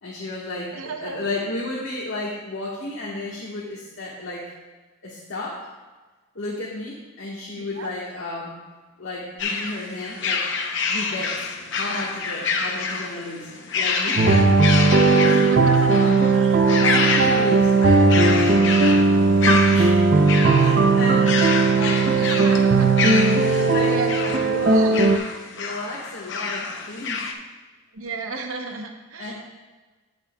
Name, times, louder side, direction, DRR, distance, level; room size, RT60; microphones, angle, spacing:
voice 1, 0.0-4.5 5.0-5.7 6.3-8.6 9.0-10.5 10.9-11.5 11.7-18.8 19.7-20.0 20.5-21.4 21.7-22.4 23.3-27.2 29.2-29.3, left 2 dB, 80° left, -6 dB, 1.4 m, -33 dB
voice 2, 0.7-1.2 7.8-7.9 15.2-16.6 22.1-23.2 23.8-24.1 24.7-24.9 27.9-29.3, right 3 dB, 85° right, 4 dB, 0.8 m, -33 dB
sound 1, 9.4-27.3, left 4 dB, 60° left, 0.7 m, -28 dB
sound 2, 14.2-25.2, right 3 dB, 45° right, 0.6 m, -17 dB
15.0 x 5.7 x 2.3 m, 1.2 s
head